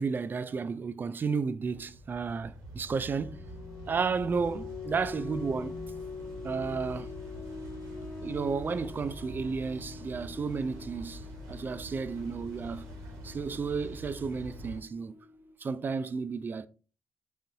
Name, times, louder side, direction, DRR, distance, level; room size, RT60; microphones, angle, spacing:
voice 1, 0.0-3.4 3.9-5.7 6.4-7.1 8.2-12.9 13.2-15.1 15.6-16.7, right 5 dB, 40° right, 0.3 m, -32 dB
sound 1, 1.6-14.8, equal, 85° right, 0.8 m, -45 dB
sound 2, 3.0-15.6, left 3 dB, 50° left, 0.6 m, -45 dB
3.8 x 2.5 x 2.7 m
supercardioid pair, 50°, 5 cm